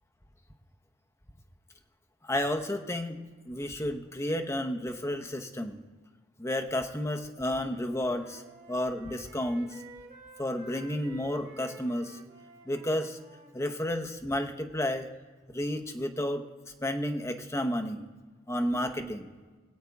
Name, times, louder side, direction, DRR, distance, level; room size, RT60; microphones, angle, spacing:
voice 1, 2.2-3.2 3.5-5.8 6.4-8.4 8.7-9.8 10.4-12.2 12.6-13.2 13.5-15.1 15.5-16.4 16.8-18.1 18.5-19.3, left 1 dB, 15° left, 6 dB, 0.9 m, -31 dB
Wind instrument woodwind instrument, 7.3-14.0, right 2 dB, 40° right, 2.2 m, -52 dB
23.5 x 8.1 x 3.5 m, 1.3 s
head